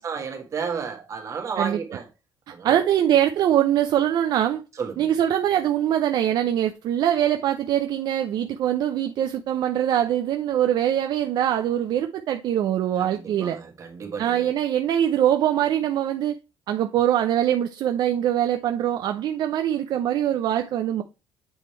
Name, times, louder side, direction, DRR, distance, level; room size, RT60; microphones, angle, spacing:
voice 1, 0.0-2.0 2.5-2.8 4.8-5.1 13.1-14.5, right 6 dB, 40° right, 1.6 m, -32 dB
voice 2, 2.6-4.6 5.0-13.6 14.2-16.4 16.7-21.0, right 11 dB, 60° right, 0.5 m, -23 dB
8.0 x 3.3 x 4.4 m
cardioid pair, 135°, 8 cm